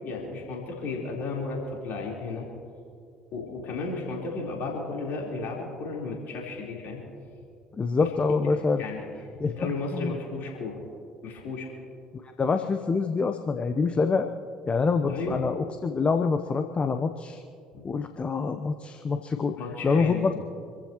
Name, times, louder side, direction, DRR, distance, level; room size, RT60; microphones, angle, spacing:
voice 1, 0.0-2.5 3.3-7.0 8.8-9.0 9.4-10.7 11.2-11.7 15.1-15.5 19.6-20.3, left 3 dB, 55° left, -2 dB, 4.2 m, -33 dB
voice 2, 7.7-8.9 9.4-10.1 12.4-14.3 14.7-17.4 17.8-19.6 19.8-20.3, left 4 dB, 30° left, 7 dB, 1.0 m, -26 dB
27.5 x 14.5 x 3.1 m, 2.3 s
figure-of-eight pair, 55°, 4 cm